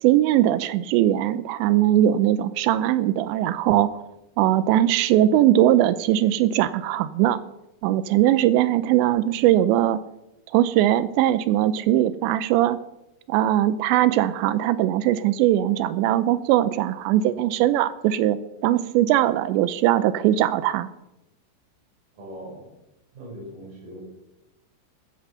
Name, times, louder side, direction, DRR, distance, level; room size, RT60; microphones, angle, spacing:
voice 1, 0.0-4.0 4.4-7.4 7.8-10.0 10.5-12.8 13.3-18.4 18.6-20.9, right 13 dB, 85° right, 15 dB, 2.6 m, -20 dB
voice 2, 22.1-22.7 23.1-24.0, equal, 45° right, -5 dB, 7.4 m, -40 dB
15.0 x 9.8 x 6.8 m, 0.91 s
omnidirectional pair, 5.7 m